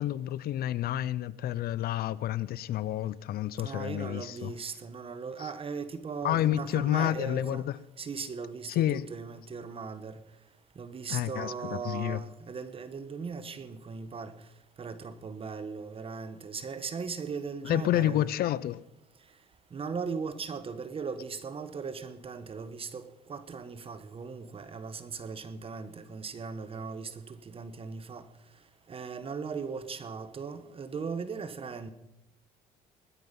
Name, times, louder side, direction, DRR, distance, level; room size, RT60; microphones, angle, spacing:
voice 1, 0.0-4.5 5.4-5.5 6.2-7.7 8.7-9.0 11.1-12.2 17.6-18.8, left 12 dB, 65° left, 0.6 m, -29 dB
voice 2, 3.6-7.7 8.0-10.2 10.7-14.4 14.8-18.3 19.7-28.3 28.9-31.9, right 5 dB, 35° right, 1.2 m, -38 dB
20.0 x 9.5 x 5.4 m
cardioid pair, 110°, 17 cm